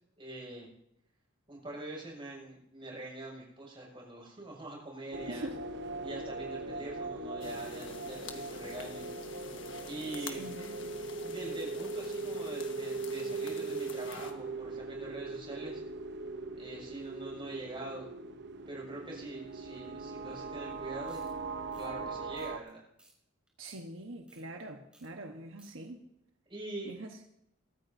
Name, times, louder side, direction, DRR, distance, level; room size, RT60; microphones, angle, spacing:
voice 1, 0.2-0.7 1.5-5.5 6.0-9.1 9.8-10.5 11.2-15.8 16.5-18.1 18.7-21.2 21.8-22.8 26.5-26.9, right 2 dB, 25° right, 6.6 m, -43 dB
sound 1, 5.1-22.6, right 3 dB, 60° right, 0.9 m, -40 dB
sound 2, 7.4-14.3, left 5 dB, 70° left, 1.5 m, -48 dB
voice 2, 10.4-11.0 23.6-26.0 26.8-27.1, right 1 dB, 80° right, 1.3 m, -43 dB
sound 3, 21.0-21.3 21.7-21.9 22.4-22.7 23.0-23.1 23.5-23.8 24.3-24.4 24.9-25.1 25.3-25.7, right 1 dB, 5° right, 4.5 m, -62 dB
23.5 x 13.5 x 2.8 m
head